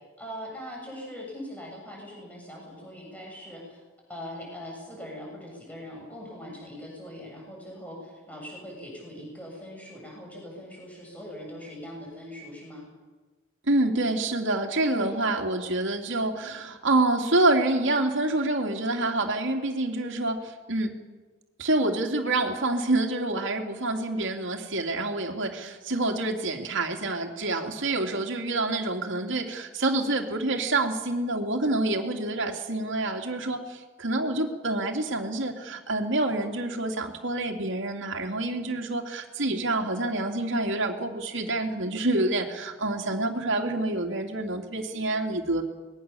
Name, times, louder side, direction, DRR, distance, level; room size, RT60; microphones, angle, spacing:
voice 1, 0.2-3.8 4.1-12.9 14.8-15.3, equal, 5° left, -2 dB, 7.3 m, -41 dB
voice 2, 13.7-21.0 21.6-45.6, right 2 dB, 65° right, 2 dB, 2.8 m, -27 dB
25.0 x 21.0 x 7.1 m, 1.3 s
head